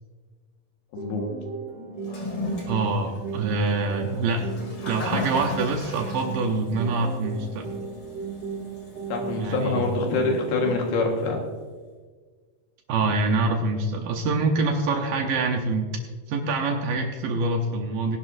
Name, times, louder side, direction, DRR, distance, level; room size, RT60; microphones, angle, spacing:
voice 1, 0.9-1.2 9.1-11.4, left 3 dB, 85° left, 1 dB, 3.4 m, -25 dB
sound 1, 1.0-11.0, right 4 dB, 55° right, 3.6 m, -36 dB
Toilet flush, 2.0-11.3, left 2 dB, 40° left, 2.6 m, -37 dB
voice 2, 2.7-4.5 4.9-7.7 9.4-9.8 12.9-15.9 16.3-18.2, right 3 dB, 75° right, 3 dB, 2.5 m, -25 dB
19.5 x 11.5 x 2.6 m, 1.5 s
omnidirectional pair, 4.2 m